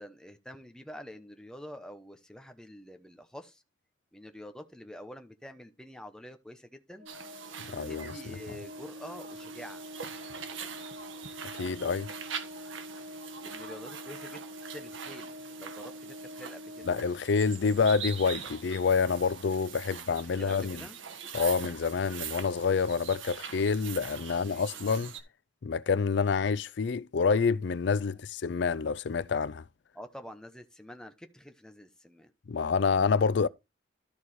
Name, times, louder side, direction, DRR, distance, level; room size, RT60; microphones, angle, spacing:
voice 1, 0.0-3.6 4.1-7.1 7.7-9.8 13.4-14.4 14.7-16.9 19.9-20.0 20.3-21.0 24.3-24.8 28.0-28.2 29.9-32.3, equal, 5° left, 0.9 m, -47 dB
Organ, 7.0-17.7, left 1 dB, 55° right, 4.3 m, -46 dB
sound 1, 7.1-25.2, right 7 dB, 75° right, 1.4 m, -43 dB
voice 2, 7.7-8.1 11.5-12.1 16.9-20.8 21.3-25.1 25.6-29.6 32.5-33.5, left 5 dB, 60° left, 0.4 m, -27 dB
13.0 x 4.7 x 4.2 m
head